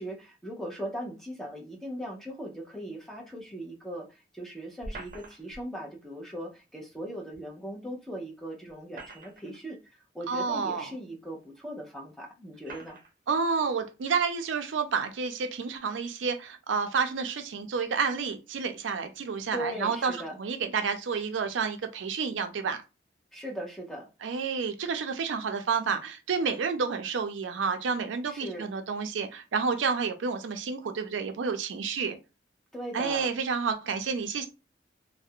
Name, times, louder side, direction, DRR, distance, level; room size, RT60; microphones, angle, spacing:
voice 1, 0.0-13.0 19.5-20.4 23.3-24.1 28.3-28.7 32.7-33.3, equal, 5° left, 0.6 m, -39 dB
sound 1, 4.8-5.6 7.3-7.4 8.7-9.6 10.5-10.6 11.5-11.6 12.6-13.1, right 2 dB, 50° right, 0.6 m, -44 dB
voice 2, 10.3-10.9 13.3-22.8 24.2-32.2 32.9-34.5, right 5 dB, 90° right, 0.4 m, -30 dB
2.4 x 2.1 x 2.7 m
head